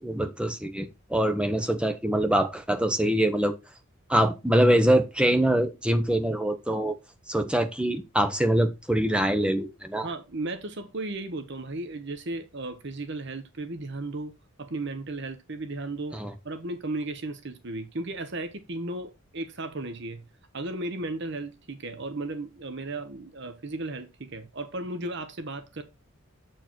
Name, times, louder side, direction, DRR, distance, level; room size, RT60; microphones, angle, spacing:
voice 1, 0.0-3.5 4.1-7.0 7.3-10.1 16.1-16.3, right 1 dB, 5° right, 0.8 m, -24 dB
voice 2, 10.0-14.3 14.6-16.2 16.4-20.2 20.5-25.8, right 2 dB, 50° right, 0.9 m, -35 dB
7.8 x 4.6 x 4.4 m
head